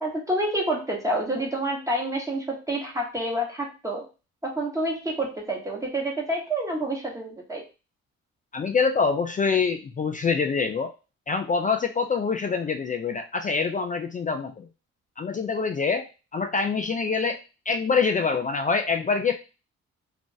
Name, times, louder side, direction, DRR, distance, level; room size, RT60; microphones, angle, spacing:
voice 1, 0.0-4.0 4.4-7.6, right 1 dB, 10° right, -1 dB, 1.1 m, -28 dB
voice 2, 8.5-10.9 11.3-14.7 15.2-16.1 16.3-17.4 17.7-19.4, left 5 dB, 30° left, 6 dB, 0.3 m, -25 dB
2.5 x 2.4 x 3.8 m, 0.31 s
cardioid pair, 90°, 30 cm